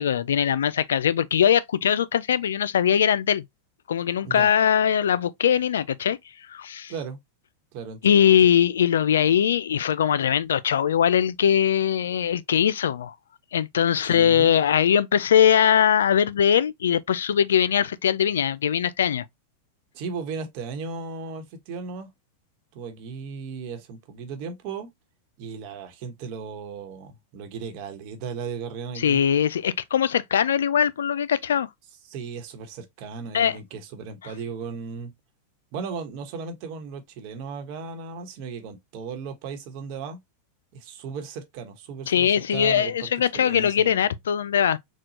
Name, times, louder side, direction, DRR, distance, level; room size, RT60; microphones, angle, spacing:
voice 1, 0.0-3.4 3.9-6.2 6.5-6.9 8.0-13.1 13.5-19.3 29.0-31.7 33.3-33.6 42.1-44.8, left 9 dB, 85° left, 0.3 m, -21 dB
voice 2, 6.9-7.2 7.7-8.3 14.0-14.5 19.9-22.1 22.7-24.9 25.4-29.2 32.0-35.1 35.7-40.2 40.7-43.1 43.3-44.0, right 5 dB, 55° right, 1.1 m, -36 dB
4.2 x 2.2 x 2.9 m
hypercardioid pair, 115°, 0 cm